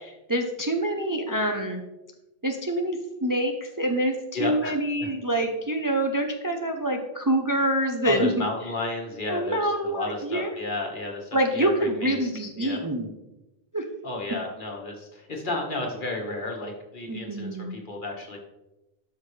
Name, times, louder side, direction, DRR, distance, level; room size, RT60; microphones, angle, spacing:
voice 1, 0.0-1.8 2.4-8.3 9.3-10.5 11.3-13.1 13.7-13.8 17.1-17.8, right 1 dB, 25° right, 3 dB, 0.6 m, -26 dB
voice 2, 4.3-4.7 5.0-5.1 8.0-12.3 12.6-12.8 14.0-18.4, left 2 dB, 50° left, 0 dB, 1.7 m, -32 dB
12.0 x 5.9 x 3.3 m, 0.98 s
omnidirectional pair, 1.1 m